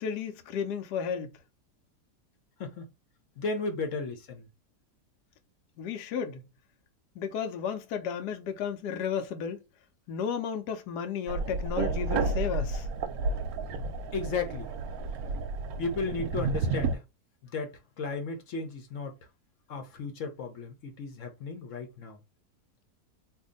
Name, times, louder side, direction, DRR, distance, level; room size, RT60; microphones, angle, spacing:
voice 1, 0.0-1.3 5.8-6.4 7.2-9.6 10.1-12.9, left 7 dB, 80° left, 1.2 m, -33 dB
voice 2, 3.4-4.5 14.1-14.7 15.8-17.0 17.4-19.1 19.7-22.2, left 4 dB, 60° left, 1.0 m, -34 dB
sound 1, 11.3-17.0, right 3 dB, 70° right, 1.0 m, -31 dB
2.7 x 2.5 x 3.7 m
omnidirectional pair, 1.7 m